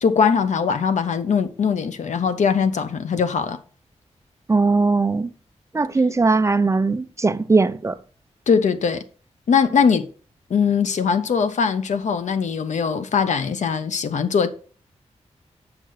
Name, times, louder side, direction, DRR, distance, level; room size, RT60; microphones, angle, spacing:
voice 1, 0.0-3.6 8.5-9.0 9.5-10.1 10.5-14.5, left 6 dB, 85° left, 1.0 m, -21 dB
voice 2, 4.5-5.3 5.7-8.0, right 3 dB, 25° right, 0.6 m, -19 dB
9.0 x 6.1 x 6.5 m
wide cardioid pair, 135°, 12 cm